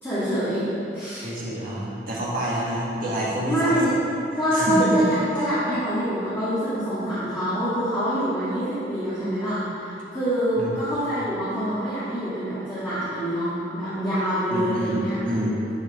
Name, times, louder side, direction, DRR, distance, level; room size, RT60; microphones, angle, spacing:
voice 1, 0.0-1.2 3.5-4.0 4.4-15.2, equal, 15° left, -14 dB, 2.2 m, -25 dB
voice 2, 1.1-3.7 4.5-5.1 10.6-10.7 14.5-15.6, right 1 dB, 50° right, -6 dB, 2.1 m, -27 dB
11.5 x 4.9 x 5.0 m, 2.8 s
head